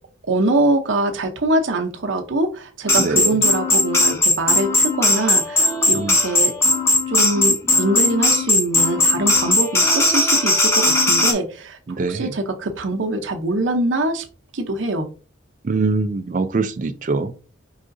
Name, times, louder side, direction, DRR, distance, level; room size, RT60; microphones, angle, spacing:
voice 1, 0.3-6.5 7.1-11.8 12.1-14.2 14.5-15.1, right 2 dB, 70° right, 0.7 m, -23 dB
sound 1, 2.9-11.3, left 2 dB, 15° left, 0.7 m, -18 dB
voice 2, 3.0-3.3 6.0-6.1 12.0-12.3 15.7-17.3, right 3 dB, 40° right, 0.4 m, -22 dB
4.8 x 3.6 x 2.6 m
head